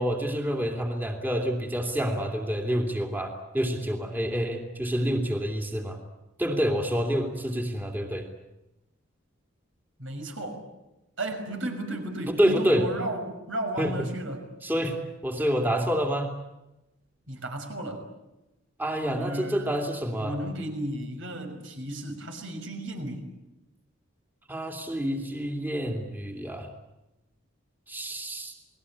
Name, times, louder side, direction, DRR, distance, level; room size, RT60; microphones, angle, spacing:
voice 1, 0.0-6.0 6.4-8.3 12.3-12.9 13.8-14.1 14.6-16.3 18.8-20.3 24.5-26.7 27.9-28.5, equal, 10° right, 2 dB, 2.6 m, -28 dB
voice 2, 10.0-10.7 11.2-14.5 17.3-18.0 19.1-19.8 20.2-23.3, right 1 dB, 70° right, 4 dB, 6.0 m, -34 dB
30.0 x 20.0 x 8.7 m, 0.97 s
head